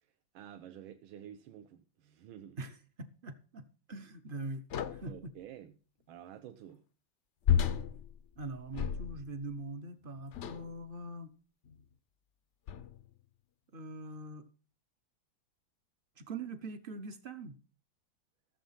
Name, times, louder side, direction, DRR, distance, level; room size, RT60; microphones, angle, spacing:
voice 1, 0.0-2.6 5.0-5.7 6.1-6.8, right 10 dB, 90° right, 8 dB, 1.6 m, -50 dB
voice 2, 2.6-4.6 4.9-5.3 8.4-11.3 13.7-14.4 16.2-17.6, right 2 dB, 65° right, 9 dB, 0.5 m, -43 dB
sound 1, 4.7-5.2 7.4-9.4 10.3-10.8 11.6-11.8 12.7-13.1, left 8 dB, 80° left, 0.6 m, -33 dB
15.0 x 7.2 x 5.7 m, 0.38 s
omnidirectional pair, 2.1 m